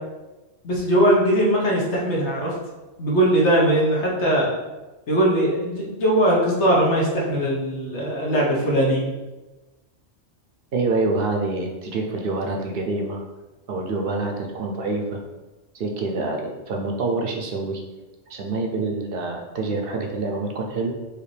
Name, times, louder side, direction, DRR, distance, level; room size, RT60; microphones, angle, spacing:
voice 1, 0.6-2.5 3.0-4.5 5.1-9.1, right 1 dB, 80° left, -4 dB, 1.4 m, -20 dB
voice 2, 10.7-13.2 13.7-15.2 15.7-17.8 18.3-20.9, right 3 dB, 60° right, 2 dB, 0.7 m, -26 dB
4.9 x 2.7 x 3.2 m, 1.1 s
omnidirectional pair, 1.2 m